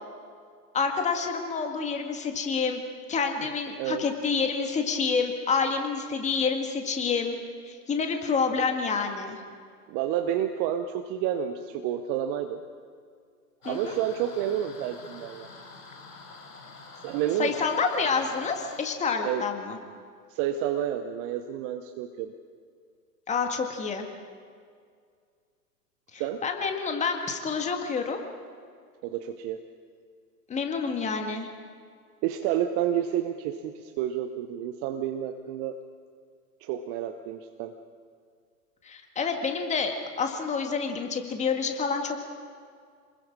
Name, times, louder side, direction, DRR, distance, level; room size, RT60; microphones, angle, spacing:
voice 1, 0.7-2.8 3.1-7.4 7.6-9.4 13.6-13.9 17.4-19.8 23.3-24.1 26.1-28.2 30.5-31.5 38.8-42.2, left 5 dB, 15° left, 4 dB, 2.0 m, -28 dB
voice 2, 9.9-12.6 13.6-15.5 17.0-17.6 19.2-19.5 20.3-22.3 26.2-26.4 29.0-29.6 32.2-35.8 36.6-37.7, right 10 dB, 30° right, 7 dB, 0.9 m, -30 dB
sound 1, 13.6-18.8, left 3 dB, 70° left, 4.0 m, -47 dB
28.0 x 21.0 x 4.9 m, 2.1 s
figure-of-eight pair, 105°, 48 cm